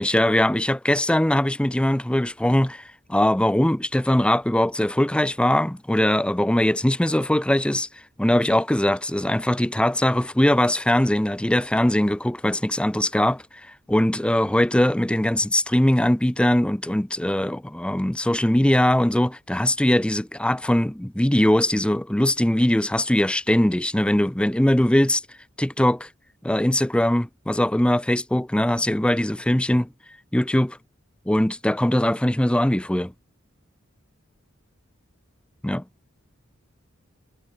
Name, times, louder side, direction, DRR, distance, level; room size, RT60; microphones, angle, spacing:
voice 1, 0.0-2.8 3.1-7.9 8.2-13.4 13.9-25.2 25.6-26.1 26.4-29.9 30.3-30.8 31.3-33.1 35.6-35.8, left 1 dB, 5° left, 0.5 m, -21 dB
head